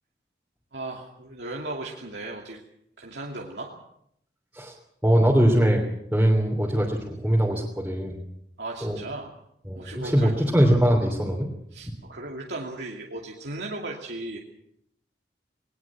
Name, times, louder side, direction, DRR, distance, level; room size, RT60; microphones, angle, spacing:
voice 1, 0.7-2.6 3.0-3.7 8.6-9.3 9.7-10.3 11.7-14.4, right 2 dB, 80° right, -1 dB, 2.6 m, -36 dB
voice 2, 5.0-5.8 6.1-8.2 8.8-9.0 9.7-11.5, equal, 10° right, -3 dB, 3.2 m, -21 dB
20.0 x 19.5 x 7.4 m, 0.74 s
head